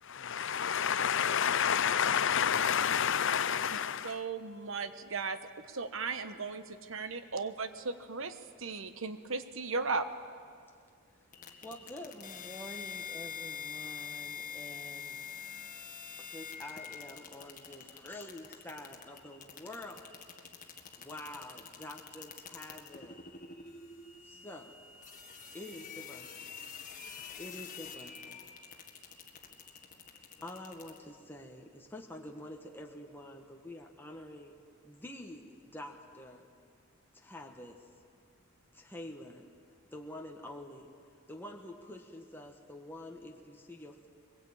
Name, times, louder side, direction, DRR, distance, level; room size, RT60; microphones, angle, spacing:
voice 1, 0.1-4.2, left 8 dB, 65° left, 15 dB, 0.7 m, -29 dB
voice 2, 3.7-5.4 5.7-10.1, right 4 dB, 65° right, 10 dB, 1.2 m, -37 dB
sound 1, 11.3-31.0, left 6 dB, 40° left, 1.8 m, -46 dB
voice 3, 11.6-15.3 16.2-20.2 21.0-23.2 24.2-24.8 25.5-26.6 27.4-28.5 30.4-34.6 34.8-36.4 37.1-37.8 38.7-39.5 39.9-40.9 41.3-44.1, left 1 dB, 10° left, 1 dB, 1.4 m, -47 dB
23.0 x 21.5 x 8.7 m, 2.2 s
head